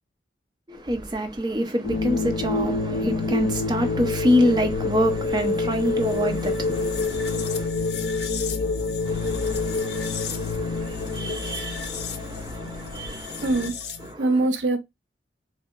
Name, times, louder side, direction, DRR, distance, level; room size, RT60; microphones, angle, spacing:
voice 1, 0.7-7.7 9.0-13.4, equal, 25° right, 0.6 m, -27 dB
sound 1, 1.8-14.1, left 3 dB, 60° left, 0.5 m, -27 dB
voice 2, 13.4-13.7 14.2-14.8, right 2 dB, 85° right, 0.5 m, -25 dB
2.8 x 2.7 x 2.4 m
head